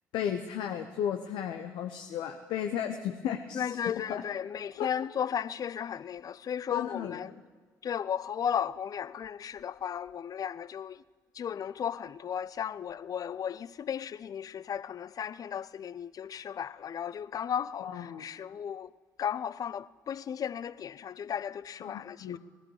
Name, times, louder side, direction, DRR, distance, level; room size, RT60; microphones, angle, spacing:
voice 1, 0.1-3.8 4.1-4.2 4.8-4.9 6.7-7.3 17.8-18.2 21.8-22.4, left 9 dB, 60° left, 0.9 m, -34 dB
voice 2, 3.5-7.3 7.8-11.0 11.3-18.9 19.2-22.4, left 8 dB, 40° left, 0.5 m, -35 dB
19.5 x 14.5 x 4.9 m
figure-of-eight pair, 45°, 9 cm